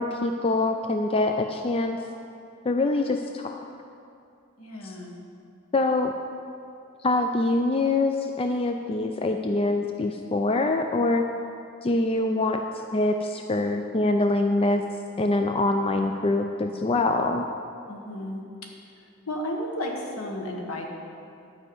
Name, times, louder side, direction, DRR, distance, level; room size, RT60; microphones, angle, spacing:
voice 1, 0.0-2.0 2.6-3.6 5.7-6.1 7.0-11.2 11.8-12.6 12.9-14.8 15.2-17.5, left 2 dB, 25° left, 5 dB, 0.4 m, -24 dB
voice 2, 4.6-5.2 17.9-18.4 18.9-20.9, left 1 dB, 70° left, 1 dB, 1.5 m, -33 dB
11.0 x 5.4 x 7.9 m, 2.5 s
head